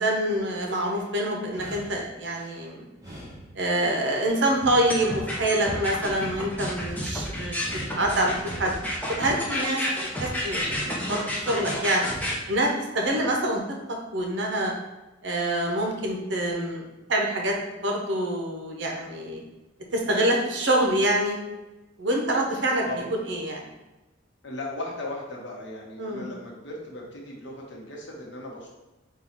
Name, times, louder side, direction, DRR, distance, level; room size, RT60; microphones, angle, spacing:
voice 1, 0.0-2.8 3.5-7.7 8.0-8.7 9.2-12.1 12.5-12.7 12.9-13.6 13.9-14.7 15.2-16.8 17.1-19.4 19.9-21.4 22.0-22.9 23.3-23.6 26.0-26.3, right 1 dB, 70° right, 0 dB, 0.8 m, -26 dB
sound 1, 0.6-1.1 1.5-2.6 3.0-4.1 4.5-5.6 6.0-7.1 7.5-8.6 9.0-10.1 10.5-11.5 11.9-12.6, equal, 20° right, 0.9 m, -43 dB
sound 2, 4.9-12.3, left 1 dB, 10° left, 0.6 m, -30 dB
voice 2, 24.4-28.7, left 1 dB, 70° left, -3 dB, 1.0 m, -37 dB
3.7 x 2.4 x 4.4 m, 1.1 s
head